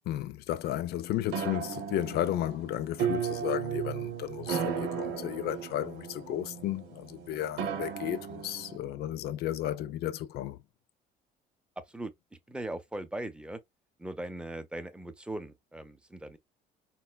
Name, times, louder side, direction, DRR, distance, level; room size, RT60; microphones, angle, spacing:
voice 1, 0.1-10.6, left 12 dB, 70° left, 0.4 m, -33 dB
sound 1, 1.3-8.8, right 8 dB, 85° right, 0.9 m, -35 dB
voice 2, 12.5-13.6 14.0-16.4, right 1 dB, 5° right, 0.6 m, -39 dB
4.1 x 2.2 x 2.2 m
cardioid pair, 110°, 17 cm